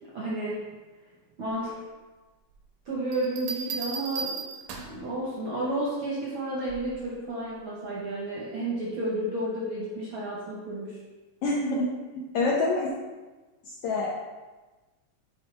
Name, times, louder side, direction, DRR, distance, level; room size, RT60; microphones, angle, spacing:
voice 1, 0.0-0.6 1.4-1.7 2.9-4.4 4.8-11.0, right 1 dB, 65° right, -5 dB, 1.3 m, -31 dB
Bell, 3.1-5.1 6.7-7.0, right 4 dB, 85° right, 2.3 m, -35 dB
voice 2, 11.4-11.9 12.3-12.9 13.6-14.2, left 2 dB, 75° left, -3 dB, 1.4 m, -26 dB
7.9 x 4.2 x 3.2 m, 1.2 s
omnidirectional pair, 3.4 m